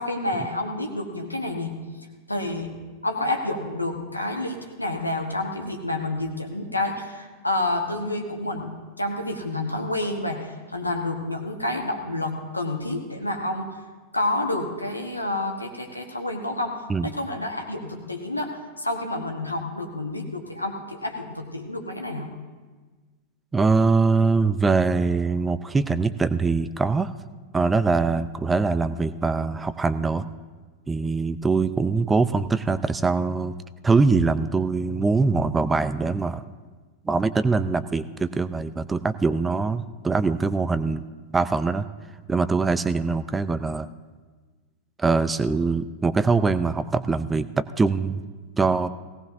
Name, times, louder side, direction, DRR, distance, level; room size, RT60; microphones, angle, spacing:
voice 1, 0.0-1.8 2.3-2.7 3.0-8.7 9.0-13.7 14.1-16.8 17.0-22.3, left 2 dB, 85° left, 3 dB, 1.3 m, -29 dB
voice 2, 23.5-27.1 27.5-30.3 30.9-33.5 33.8-36.4 37.1-41.1 41.3-41.9 42.3-43.9 45.0-48.2 48.6-48.9, right 4 dB, 10° right, 14 dB, 0.5 m, -23 dB
18.5 x 17.5 x 2.7 m, 1.4 s
figure-of-eight pair, 90°, 0 cm